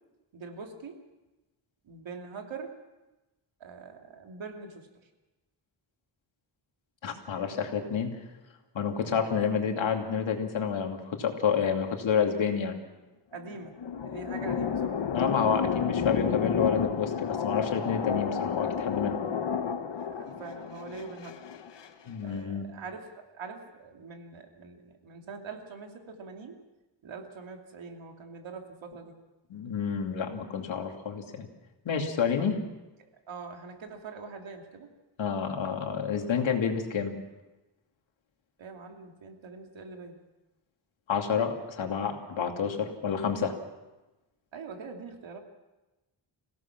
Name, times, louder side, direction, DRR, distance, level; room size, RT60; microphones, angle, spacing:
voice 1, 0.3-1.0 1.8-2.7 3.6-5.1 13.3-13.8 14.0-15.0 20.0-21.5 22.2-26.5 27.0-29.1 33.3-34.9 38.6-40.2 44.5-45.4, right 4 dB, 90° right, 3 dB, 3.0 m, -43 dB
voice 2, 7.0-8.2 8.7-12.8 15.1-19.2 22.1-22.7 29.5-31.5 31.8-32.6 35.2-37.1 41.1-43.6, left 6 dB, 85° left, 3 dB, 2.8 m, -29 dB
sound 1, 13.3-21.9, left 7 dB, 65° left, 1.4 m, -31 dB
27.0 x 17.0 x 6.0 m, 1.1 s
wide cardioid pair, 105°, 45 cm